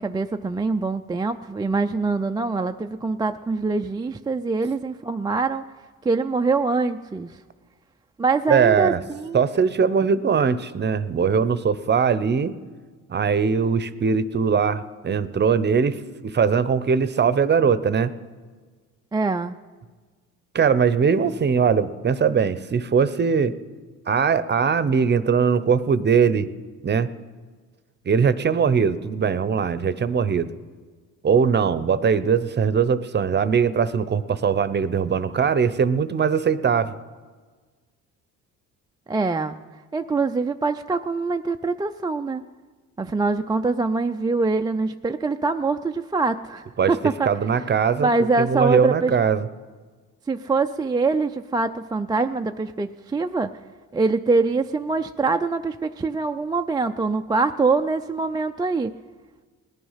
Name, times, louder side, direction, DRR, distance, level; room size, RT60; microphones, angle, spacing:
voice 1, 0.0-5.6 6.0-7.4 8.2-9.4 19.1-19.6 39.1-39.6 39.9-42.4 43.0-47.3 48.0-49.1 50.3-53.5 53.9-58.9, right 3 dB, 15° right, 6 dB, 0.4 m, -24 dB
voice 2, 8.5-9.0 9.3-12.5 13.1-18.1 20.5-23.5 24.1-26.5 26.8-27.1 28.1-30.5 31.2-36.9 46.8-46.9 47.2-48.1 48.4-49.5, right 6 dB, 30° right, 15 dB, 0.7 m, -21 dB
19.0 x 10.5 x 5.7 m, 1.4 s
cardioid pair, 85°, 33 cm